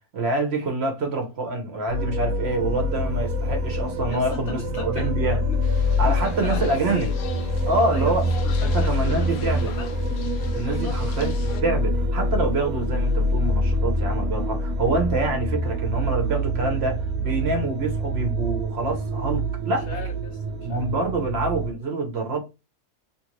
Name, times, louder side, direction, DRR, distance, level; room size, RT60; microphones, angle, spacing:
voice 1, 0.1-5.4 6.0-7.1 7.7-8.3 8.6-9.7 10.5-11.3 11.6-19.9 20.6-22.4, right 2 dB, 55° right, 0.9 m, -26 dB
sound 1, 1.9-21.7, equal, 85° right, 1.0 m, -25 dB
voice 2, 4.0-5.1 5.4-5.6 6.0-7.2 7.9-10.0 10.6-11.0 19.7-20.8, left 6 dB, 65° left, 0.8 m, -38 dB
sound 2, 5.6-11.6, left 8 dB, 85° left, 1.0 m, -42 dB
2.8 x 2.5 x 2.9 m
omnidirectional pair, 1.5 m